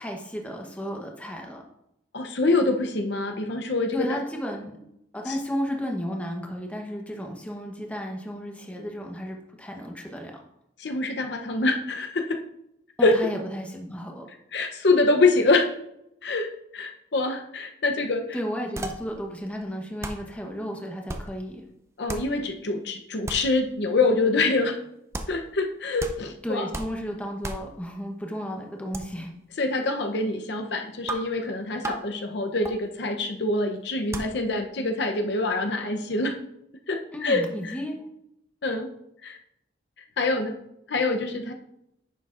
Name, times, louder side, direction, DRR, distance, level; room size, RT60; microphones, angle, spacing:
voice 1, 0.0-1.6 3.9-4.9 5.1-10.4 13.0-14.3 18.3-21.6 26.4-29.3 37.1-38.1, equal, 5° left, 1 dB, 0.9 m, -33 dB
voice 2, 2.1-4.2 5.3-5.4 10.8-12.4 13.0-13.2 14.5-15.7 16.2-18.4 22.0-24.8 25.3-26.7 29.6-36.4 36.9-37.7 38.6-38.9 39.2-39.4 40.2-40.6 40.9-41.5, left 3 dB, 65° left, 4 dB, 0.7 m, -25 dB
sound 1, 18.8-19.2 19.6-19.7 20.0-20.4 21.1-21.5 22.1-22.4 23.2-23.6 25.1-25.4 26.0-26.4 26.7-27.1 27.4-27.7 28.9-29.1 31.1-31.4 31.8-32.1 32.6-32.8 34.1-34.4, right 2 dB, 15° right, 0.5 m, -35 dB
10.0 x 6.9 x 2.5 m, 0.81 s
head